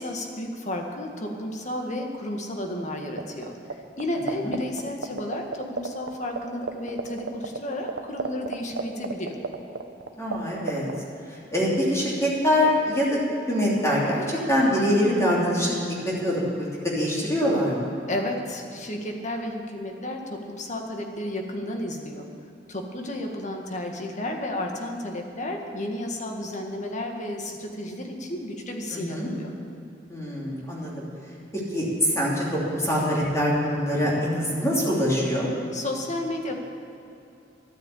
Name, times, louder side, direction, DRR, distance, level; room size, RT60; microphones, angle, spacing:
voice 1, 0.0-9.4 18.1-22.3 22.7-29.5 35.7-36.6, left 1 dB, 40° left, 2 dB, 1.7 m, -32 dB
sound 1, 3.2-3.7 4.0-6.1 6.4-6.5 6.6-10.4 10.6-11.0, right 4 dB, 80° right, 1.0 m, -28 dB
voice 2, 10.2-10.9 11.3-13.2 13.5-17.9 28.9-29.3 30.1-30.9 31.7-35.5, equal, 15° left, -6 dB, 2.9 m, -24 dB
13.0 x 9.3 x 8.4 m, 2.7 s
head